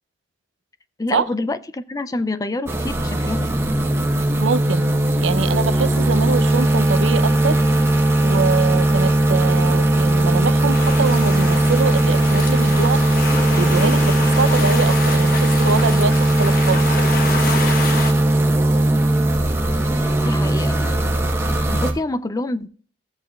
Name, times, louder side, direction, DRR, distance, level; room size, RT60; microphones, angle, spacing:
voice 1, 1.0-3.6 20.2-21.2 21.7-22.7, left 2 dB, 20° left, 12 dB, 0.3 m, -27 dB
sound 1, 2.7-21.9, right 1 dB, 15° right, 1.0 m, -18 dB
voice 2, 4.4-4.9 5.2-7.6 8.2-13.0 13.5-17.0, right 4 dB, 85° right, 14 dB, 0.5 m, -24 dB
sound 2, 10.7-18.1, left 3 dB, 50° left, 1.1 m, -28 dB
16.0 x 7.8 x 2.3 m, 0.43 s
head